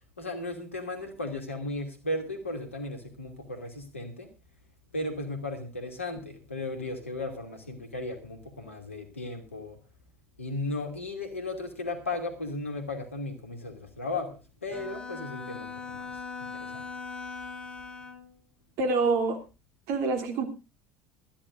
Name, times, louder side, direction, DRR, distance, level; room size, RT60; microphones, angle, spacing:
voice 1, 0.2-4.3 4.9-9.8 10.4-16.9, left 2 dB, 90° left, 5 dB, 2.7 m, -36 dB
Bowed string instrument, 14.7-18.3, left 5 dB, 15° left, 3.4 m, -40 dB
voice 2, 18.8-19.4 19.9-20.5, right 4 dB, 60° right, 6 dB, 3.2 m, -26 dB
20.5 x 13.5 x 2.6 m, 0.31 s
figure-of-eight pair, 65°, 7 cm